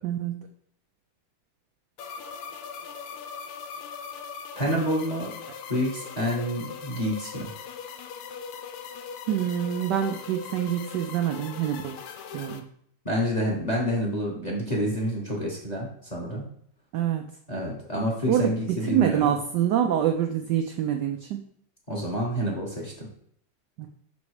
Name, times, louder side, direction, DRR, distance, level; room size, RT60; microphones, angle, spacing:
voice 1, 0.0-0.5 9.3-12.0 12.3-12.6 16.9-17.2 18.3-21.4 23.8-23.9, right 10 dB, 85° right, 5 dB, 0.9 m, -26 dB
sound 1, 2.0-12.6, left 6 dB, 85° left, 1.6 m, -40 dB
voice 2, 4.5-5.3 5.7-7.5 13.0-16.4 17.5-19.2 21.9-23.1, equal, 25° left, -1 dB, 1.0 m, -28 dB
6.1 x 4.1 x 4.8 m, 0.65 s
omnidirectional pair, 2.4 m